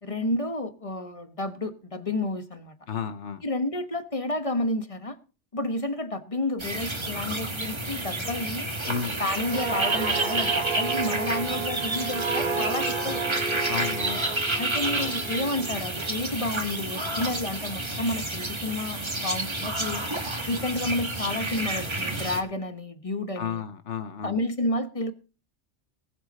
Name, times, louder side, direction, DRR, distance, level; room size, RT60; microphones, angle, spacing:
voice 1, 0.0-2.7 3.4-5.2 5.5-8.7 9.2-13.4 14.5-20.0 20.5-23.6 24.2-25.1, left 2 dB, 30° left, 9 dB, 1.2 m, -30 dB
voice 2, 2.9-3.4 8.9-9.2 13.7-14.2 23.3-24.4, left 7 dB, 75° left, 10 dB, 1.2 m, -32 dB
sound 1, 6.6-22.4, right 2 dB, 25° right, 1.6 m, -30 dB
sound 2, 9.4-16.9 17.3-17.5, right 5 dB, 45° right, 1.6 m, -32 dB
20.0 x 8.0 x 4.2 m, 0.35 s
omnidirectional pair, 1.2 m